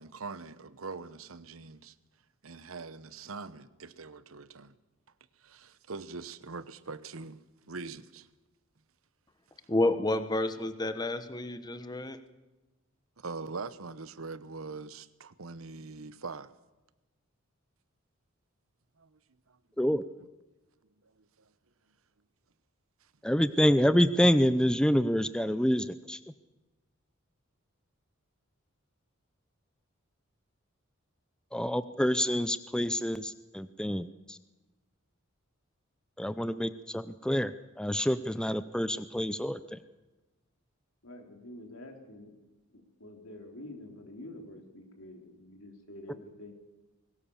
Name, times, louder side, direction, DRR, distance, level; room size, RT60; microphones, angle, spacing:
voice 1, 0.0-1.9 2.4-4.7 5.4-7.4 7.7-8.3 13.2-16.5 19.0-19.1, right 4 dB, 85° right, 1.0 m, -42 dB
voice 2, 9.7-12.2, left 2 dB, 20° left, 1.1 m, -30 dB
voice 3, 23.2-26.2 31.5-34.4 36.2-39.8, equal, 5° left, 0.6 m, -27 dB
voice 4, 41.0-42.4 42.7-46.5, left 1 dB, 80° left, 3.8 m, -48 dB
21.5 x 18.5 x 7.2 m
head